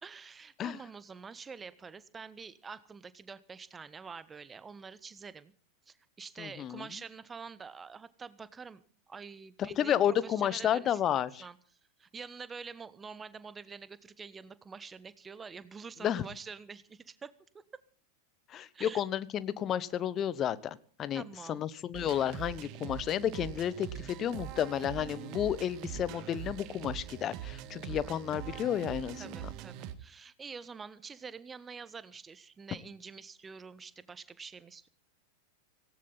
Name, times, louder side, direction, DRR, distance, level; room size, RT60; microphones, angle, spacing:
voice 1, 0.0-5.5 5.9-11.6 12.0-17.3 18.7-19.0 21.1-21.7 27.9-28.2 29.2-34.9, right 5 dB, 15° right, 16 dB, 1.3 m, -47 dB
voice 2, 6.4-6.8 9.6-11.4 16.0-16.2 18.5-21.2 21.5-29.5, left 10 dB, 30° left, 18 dB, 1.1 m, -32 dB
sound 1, 21.9-29.9, right 12 dB, 40° right, 1.7 m, -42 dB
18.0 x 18.0 x 4.1 m, 0.43 s
figure-of-eight pair, 90°, 0 cm